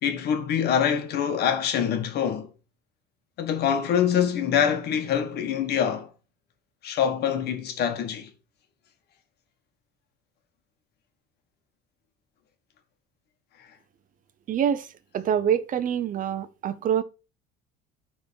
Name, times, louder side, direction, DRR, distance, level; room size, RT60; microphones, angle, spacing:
voice 1, 0.0-2.5 3.4-6.1 6.8-8.3, left 8 dB, 60° left, 1.7 m, -25 dB
voice 2, 14.5-17.0, right 9 dB, 45° right, 0.8 m, -26 dB
9.6 x 4.0 x 5.3 m
cardioid pair, 115°, 19 cm